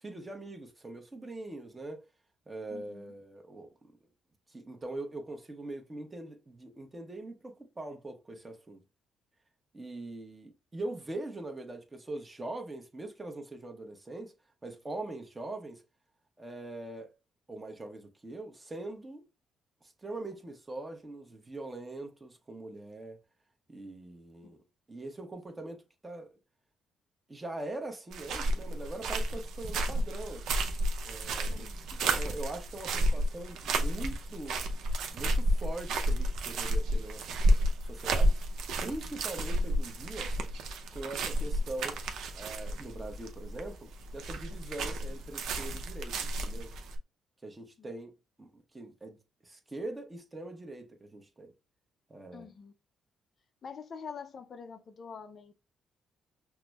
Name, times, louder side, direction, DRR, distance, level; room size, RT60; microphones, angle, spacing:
voice 1, 0.0-2.0 2.5-3.9 4.5-8.8 9.7-14.3 14.6-15.8 16.4-17.1 17.5-19.2 20.0-23.2 23.7-24.6 24.9-26.3 27.3-30.4 31.0-31.7 32.0-34.6 35.1-38.4 38.8-40.3 40.9-42.0 42.3-46.7 47.4-51.5 52.1-52.5, right 2 dB, 20° right, 0.9 m, -42 dB
voice 2, 2.7-3.1 24.4-24.6 31.5-31.8 47.8-47.9 52.3-52.7 53.6-55.5, left 6 dB, 50° left, 0.4 m, -45 dB
sound 1, 28.1-47.0, right 1 dB, 80° right, 0.6 m, -31 dB
5.8 x 2.0 x 2.3 m
cardioid pair, 90°, 0 cm